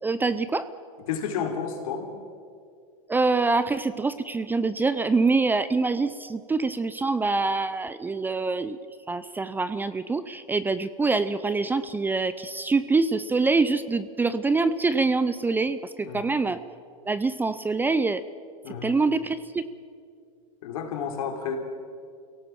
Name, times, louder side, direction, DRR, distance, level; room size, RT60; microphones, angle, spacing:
voice 1, 0.0-0.7 3.1-8.8 9.1-16.6 17.1-18.2 18.8-19.6, right 3 dB, 10° right, 14 dB, 0.6 m, -25 dB
voice 2, 1.1-2.1 16.0-16.3 18.6-19.0 20.6-21.6, left 7 dB, 70° left, 3 dB, 4.0 m, -31 dB
25.0 x 17.5 x 7.5 m, 2.3 s
supercardioid pair, 130°, 18 cm